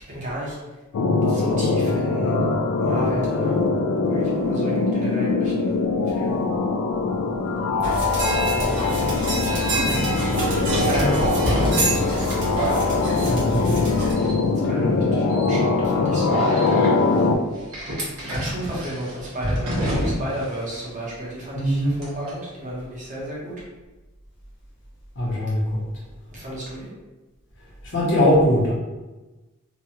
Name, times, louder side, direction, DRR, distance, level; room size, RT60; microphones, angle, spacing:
voice 1, 0.1-0.6 1.3-2.3 2.8-3.6 4.1-5.8 6.1-6.4 8.4-9.1 9.4-11.8 12.6-12.9 14.2-14.3 14.7-17.3 18.3-23.5 26.3-26.9, right 1 dB, 35° right, -7 dB, 1.0 m, -32 dB
sound 1, 0.9-17.3, left 3 dB, 80° left, 0.3 m, -22 dB
sound 2, 7.8-14.1, right 1 dB, 55° right, 1.1 m, -26 dB
sound 3, 9.5-9.6 10.9-13.9 14.2-14.7 15.3-15.5 16.3-16.9 17.7-20.5 20.7-20.8 22.0-22.3, equal, 85° right, 1.1 m, -28 dB
voice 2, 13.3-13.8 21.5-21.9 25.2-25.8 27.8-28.7, left 1 dB, 55° left, -5 dB, 0.9 m, -21 dB
3.1 x 2.3 x 2.8 m, 1.2 s
head